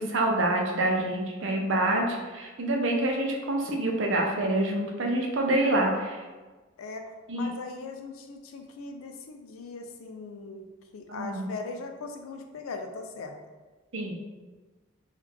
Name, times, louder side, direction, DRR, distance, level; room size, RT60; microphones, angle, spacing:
voice 1, 0.0-6.2 7.3-7.5 11.1-11.5 13.9-14.1, right 1 dB, 70° right, 1 dB, 0.6 m, -27 dB
voice 2, 6.8-10.7 10.9-13.4, left 3 dB, 90° left, 5 dB, 0.4 m, -39 dB
3.1 x 2.3 x 3.4 m, 1.3 s
head